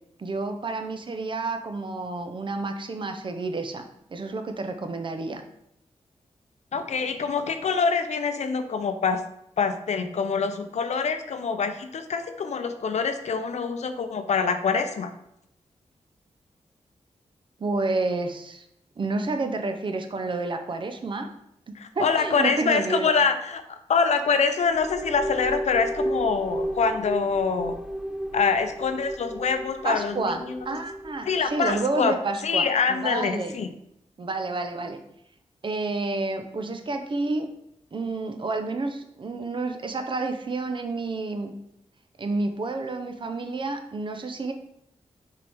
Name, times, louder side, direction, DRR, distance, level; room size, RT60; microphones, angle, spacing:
voice 1, 0.2-3.8 4.1-5.4 17.6-18.6 19.0-21.3 21.7-23.1 29.8-33.6 34.2-35.0 35.6-37.5 37.9-41.5 42.2-44.5, right 3 dB, 45° right, 6 dB, 0.7 m, -30 dB
voice 2, 6.7-9.2 9.6-15.1 21.8-27.7 28.3-30.8 31.2-32.1 32.4-33.7, left 5 dB, 70° left, 8 dB, 0.6 m, -25 dB
sound 1, 24.6-32.2, right 1 dB, 5° right, 0.4 m, -33 dB
6.6 x 4.7 x 3.5 m, 0.78 s
wide cardioid pair, 130°, 12 cm